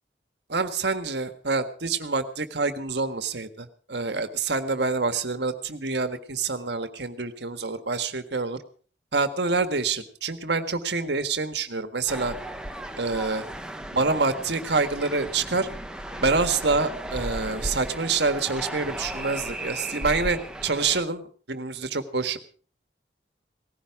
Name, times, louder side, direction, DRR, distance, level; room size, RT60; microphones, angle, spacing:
voice 1, 0.5-8.6 9.1-12.3 13.0-13.4 13.9-15.7 16.2-22.4, right 4 dB, 70° right, 9 dB, 1.6 m, -27 dB
sound 1, 12.1-21.0, right 1 dB, 5° right, 1.0 m, -35 dB
18.5 x 15.5 x 4.9 m, 0.43 s
head